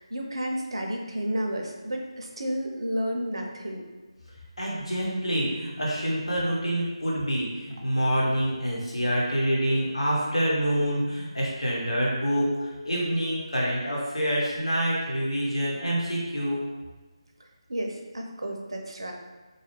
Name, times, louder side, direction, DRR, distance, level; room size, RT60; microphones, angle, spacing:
voice 1, 0.0-3.9 17.7-19.1, equal, 60° right, 2 dB, 0.5 m, -31 dB
voice 2, 4.6-16.6, equal, 75° left, -5 dB, 1.1 m, -26 dB
2.7 x 2.3 x 3.2 m, 1.2 s
figure-of-eight pair, 155°, 3 cm